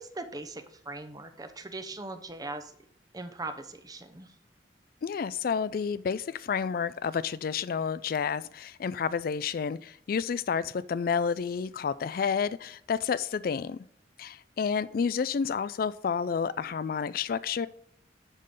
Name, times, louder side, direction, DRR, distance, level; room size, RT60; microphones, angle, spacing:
voice 1, 0.0-2.7 3.1-4.3, right 2 dB, 20° right, 8 dB, 0.7 m, -40 dB
voice 2, 5.0-13.8 14.2-17.7, left 6 dB, 55° left, 17 dB, 0.3 m, -30 dB
10.5 x 3.8 x 6.5 m, 0.67 s
head